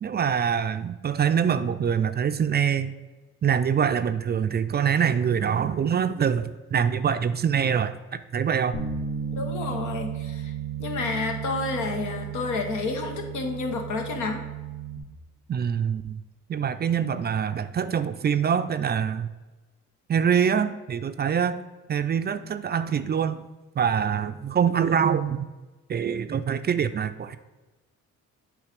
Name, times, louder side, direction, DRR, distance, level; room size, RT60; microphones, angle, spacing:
voice 1, 0.0-2.9 3.4-8.8 15.5-16.2 16.5-19.3 20.1-21.6 21.9-23.4 23.8-25.5 25.9-27.4, right 7 dB, 35° right, 11 dB, 0.4 m, -24 dB
Bass guitar, 8.7-15.0, right 8 dB, 65° left, 1.8 m, -34 dB
voice 2, 9.3-10.5 10.8-14.4, left 4 dB, 80° left, 4 dB, 1.2 m, -30 dB
8.1 x 3.2 x 5.2 m, 1.2 s
cardioid pair, 90°, 30 cm